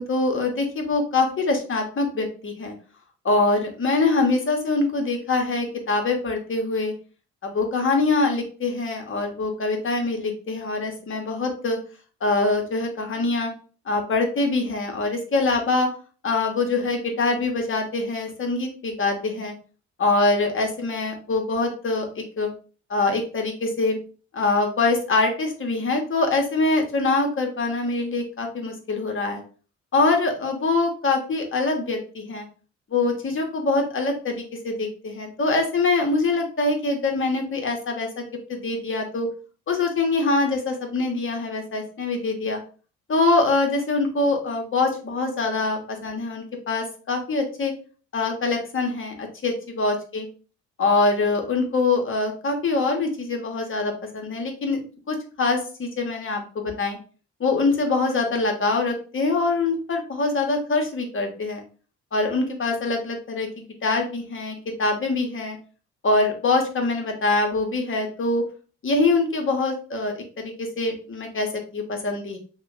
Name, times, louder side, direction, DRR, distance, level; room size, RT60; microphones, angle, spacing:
voice 1, 0.0-2.7 3.2-6.9 7.4-11.8 12.2-13.5 13.9-15.9 16.2-19.5 20.0-22.5 22.9-24.0 24.3-29.4 29.9-32.5 32.9-39.3 39.7-42.6 43.1-47.7 48.1-50.3 50.8-54.8 55.1-57.0 57.4-61.6 62.1-65.6 66.0-68.4 68.8-72.4, left 3 dB, 35° left, 3 dB, 1.1 m, -24 dB
2.8 x 2.3 x 3.6 m, 0.38 s
hypercardioid pair, 50°, 36 cm